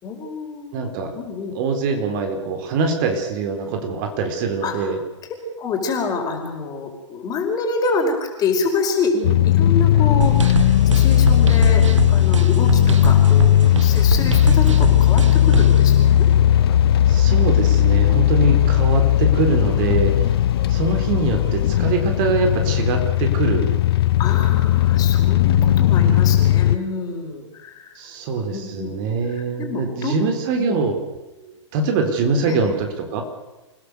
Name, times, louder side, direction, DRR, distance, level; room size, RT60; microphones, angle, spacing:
voice 1, 0.0-1.5 4.6-4.7 5.6-13.5 13.8-16.2 17.8-18.3 24.2-27.9 28.5-28.9 29.3-30.2 30.6-30.8 32.5-32.6, left 4 dB, 25° left, 3 dB, 5.2 m, -27 dB
voice 2, 0.7-1.1 1.5-5.0 17.1-20.3 20.7-23.7 26.0-26.3 28.0-31.0 31.4-33.2, right 4 dB, 40° right, 5 dB, 4.1 m, -23 dB
sound 1, 9.2-26.8, left 12 dB, 50° left, 0.9 m, -16 dB
sound 2, 10.2-15.8, right 5 dB, 70° right, 1.6 m, -24 dB
28.5 x 17.0 x 6.8 m, 1.1 s
figure-of-eight pair, 110°, 16 cm